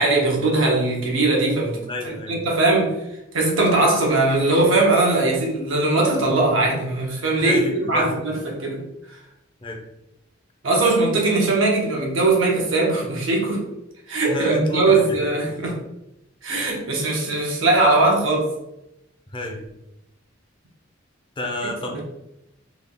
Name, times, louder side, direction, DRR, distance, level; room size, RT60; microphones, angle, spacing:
voice 1, 0.0-3.0 3.3-8.8 10.6-13.6 14.1-15.8 16.4-18.5 21.9-22.0, right 2 dB, 75° right, -1 dB, 1.1 m, -20 dB
voice 2, 1.9-2.4 7.4-8.2 9.6-9.8 14.3-15.2 19.3-19.7 21.4-22.0, left 1 dB, 25° left, 2 dB, 0.6 m, -29 dB
3.5 x 2.3 x 3.8 m, 0.86 s
head